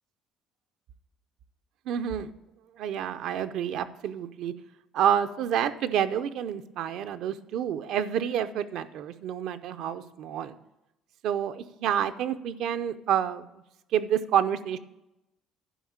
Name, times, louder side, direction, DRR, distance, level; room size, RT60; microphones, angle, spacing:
voice 1, 1.9-2.3 2.8-4.5 4.9-10.6 11.2-13.5 13.9-14.8, right 9 dB, 60° right, 11 dB, 0.6 m, -28 dB
11.0 x 5.0 x 7.2 m, 0.92 s
cardioid pair, 155°, 0 cm